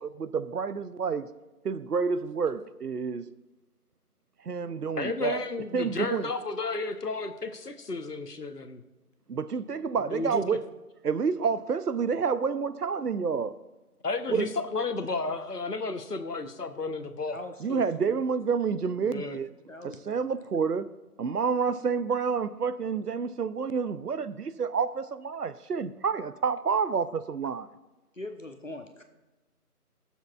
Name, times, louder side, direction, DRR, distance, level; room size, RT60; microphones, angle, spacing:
voice 1, 0.0-1.3 1.6-3.3 4.4-5.4 5.7-6.3 9.3-10.6 11.0-13.5 14.3-14.5 17.6-19.5 20.1-20.9 21.2-27.7, right 5 dB, 80° right, 0.6 m, -29 dB
voice 2, 5.0-8.8 10.0-10.4 14.0-17.4 19.0-19.4, left 3 dB, 85° left, 1.0 m, -32 dB
voice 3, 17.3-17.8 19.7-20.3 28.1-29.0, left 1 dB, 55° left, 0.8 m, -41 dB
20.5 x 7.2 x 2.4 m
figure-of-eight pair, 175°, 46 cm